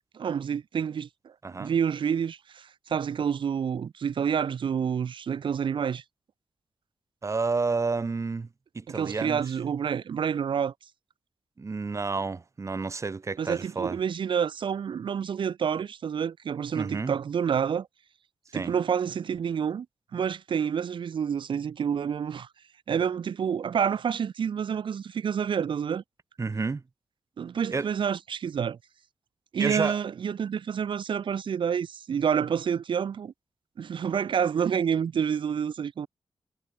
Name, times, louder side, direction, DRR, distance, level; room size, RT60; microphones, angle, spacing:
voice 1, 0.1-6.0 8.9-10.7 13.4-17.9 18.5-19.9 20.1-22.5 22.9-26.0 27.4-28.8 29.5-33.3 33.8-36.1, right 7 dB, 75° right, 4.3 m, -28 dB
voice 2, 7.2-8.5 8.7-9.4 11.6-14.0 16.8-17.2 18.5-18.7 26.4-26.8 27.7-27.9 29.6-30.0, right 4 dB, 35° right, 4.2 m, -30 dB
wide cardioid pair, 100°, 8 cm